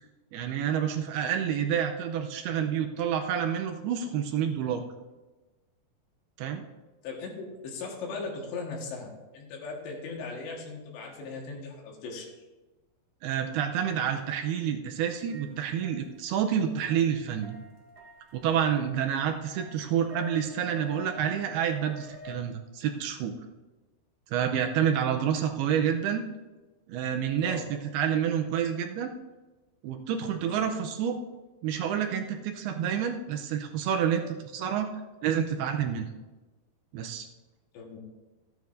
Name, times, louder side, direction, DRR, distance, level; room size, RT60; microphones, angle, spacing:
voice 1, 0.3-4.8 6.4-6.6 13.2-17.6 18.3-23.4 24.3-26.2 26.9-29.1 29.8-31.2 31.6-34.9 35.2-36.1 36.9-37.3, right 8 dB, 80° right, 5 dB, 2.4 m, -28 dB
voice 2, 7.0-9.1 9.3-12.3 27.4-27.6 30.5-30.6 37.7-38.0, left 4 dB, 75° left, 0 dB, 3.7 m, -38 dB
sound 1, 15.0-22.4, left 2 dB, 35° right, 1.5 m, -49 dB
15.5 x 9.4 x 2.6 m, 1.2 s
omnidirectional pair, 5.1 m